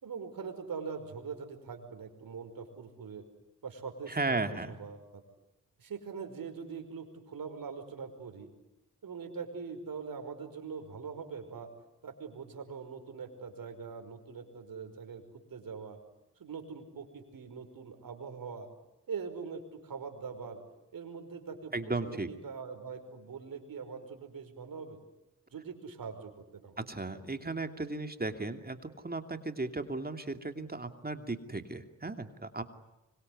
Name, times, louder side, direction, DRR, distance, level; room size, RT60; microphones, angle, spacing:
voice 1, 0.0-3.2 3.6-5.2 5.8-8.5 9.0-11.7 12.0-16.0 16.4-18.7 19.1-20.6 20.9-21.7 22.0-25.0 25.5-26.7, right 5 dB, 65° right, 6 dB, 5.5 m, -42 dB
voice 2, 4.1-4.7 21.7-22.3 26.8-28.8 29.0-32.6, right 3 dB, 25° right, 7 dB, 2.6 m, -35 dB
25.0 x 23.5 x 9.6 m, 0.98 s
supercardioid pair, 40°, 37 cm